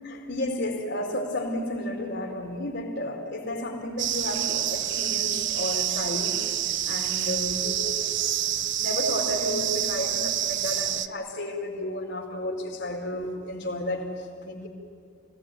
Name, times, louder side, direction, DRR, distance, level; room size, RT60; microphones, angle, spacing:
voice 1, 0.0-6.4 6.8-14.7, left 1 dB, 60° left, 4.6 m, -32 dB
sound 1, 4.0-11.1, right 11 dB, 65° right, 0.9 m, -27 dB
29.5 x 19.0 x 9.3 m
head